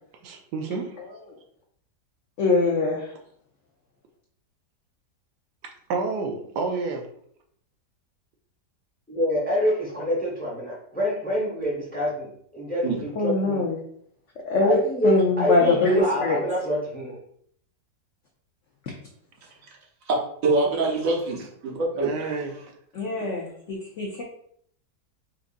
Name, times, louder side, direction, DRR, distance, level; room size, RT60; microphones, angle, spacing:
voice 1, 0.2-1.0 5.9-7.1 21.9-22.6, right 4 dB, 85° right, 2 dB, 1.2 m, -29 dB
voice 2, 1.0-1.4 2.4-3.1 13.1-13.8 14.5-14.8 15.0-16.4 22.9-24.2, left 3 dB, 65° left, -1 dB, 0.8 m, -23 dB
voice 3, 9.1-13.6 14.6-17.2, equal, 5° left, -4 dB, 0.9 m, -26 dB
voice 4, 20.4-22.1, right 3 dB, 55° right, -1 dB, 1.2 m, -24 dB
4.7 x 2.5 x 2.5 m, 0.64 s
omnidirectional pair, 1.8 m